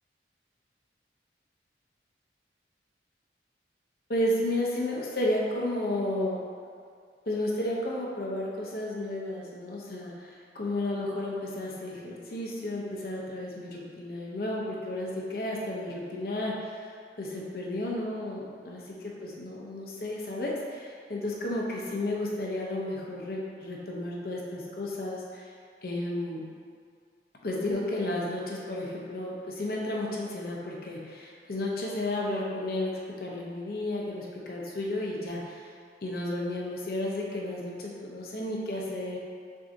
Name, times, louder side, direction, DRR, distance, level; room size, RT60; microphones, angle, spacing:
voice 1, 4.1-6.4 7.3-10.3 10.5-16.6 17.2-18.9 19.2-25.4 25.8-26.4 27.4-32.9 33.2-35.6 36.0-39.2, left 1 dB, 55° left, -3 dB, 0.7 m, -32 dB
5.9 x 2.7 x 2.6 m, 2.2 s
head